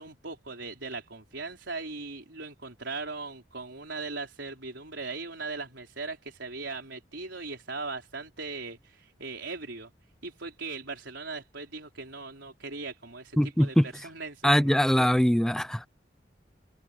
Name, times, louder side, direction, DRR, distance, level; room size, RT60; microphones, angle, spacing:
voice 1, 0.0-9.9 10.2-14.7, right 3 dB, 85° right, 4.4 m, -39 dB
voice 2, 13.4-13.8 14.4-15.9, equal, 5° left, 0.5 m, -22 dB
head